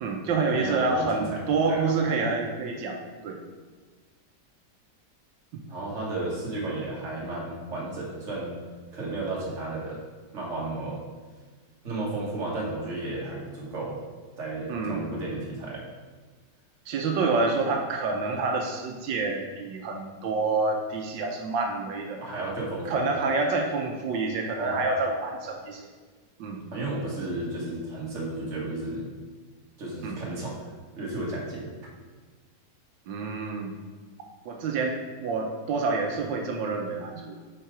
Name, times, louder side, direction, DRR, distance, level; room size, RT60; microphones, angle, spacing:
voice 1, 0.0-3.4 5.5-5.6 14.7-15.1 16.9-22.2 22.9-25.9 26.4-26.6 30.0-30.2 33.1-33.7 34.5-37.4, right 3 dB, 85° right, 2 dB, 1.4 m, -28 dB
voice 2, 0.5-1.8 5.7-8.6 8.9-10.0 10.3-11.0 11.8-14.0 14.4-15.9 22.2-23.0 24.6-24.8 26.7-29.1 29.8-30.5 31.0-31.7, right 2 dB, 45° right, -4 dB, 1.8 m, -33 dB
5.7 x 4.7 x 4.8 m, 1.4 s
omnidirectional pair, 1.9 m